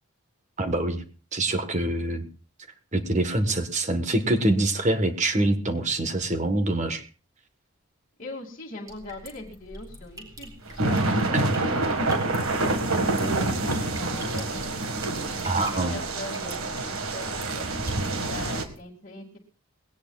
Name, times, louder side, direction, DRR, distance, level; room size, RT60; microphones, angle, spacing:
voice 1, 0.6-1.0 1.3-2.2 2.9-7.0 11.3-11.4 15.4-15.9, right 2 dB, 35° right, 8 dB, 1.3 m, -25 dB
voice 2, 8.2-14.7 15.5-17.3 17.5-19.4, left 2 dB, 40° left, -4 dB, 2.4 m, -41 dB
sound 1, 8.9-18.8, equal, 15° right, 4.0 m, -45 dB
sound 2, 10.7-18.6, right 2 dB, 90° right, 1.8 m, -27 dB
20.5 x 17.5 x 2.4 m, 0.36 s
head